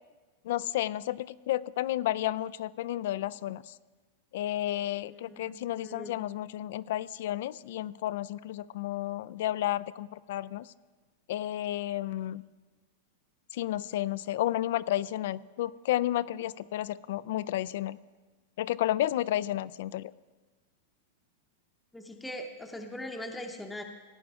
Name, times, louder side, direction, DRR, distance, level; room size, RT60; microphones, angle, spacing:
voice 1, 0.4-3.7 4.3-10.7 11.3-12.4 13.5-18.0 18.6-20.1, left 13 dB, 65° left, 18 dB, 0.3 m, -32 dB
voice 2, 5.0-6.2 21.9-23.8, left 1 dB, 5° left, 3 dB, 0.8 m, -41 dB
17.0 x 9.4 x 3.6 m, 1.3 s
supercardioid pair, 155°, 0 cm